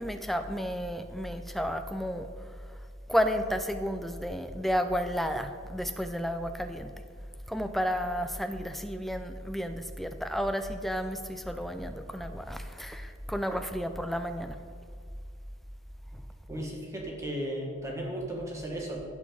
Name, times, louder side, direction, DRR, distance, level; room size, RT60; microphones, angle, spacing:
voice 1, 0.0-2.3 3.1-6.9 7.5-14.6, equal, ahead, 8 dB, 0.4 m, -32 dB
voice 2, 16.5-19.0, right 1 dB, 15° right, -2 dB, 1.7 m, -35 dB
16.5 x 6.2 x 3.9 m, 2.1 s
head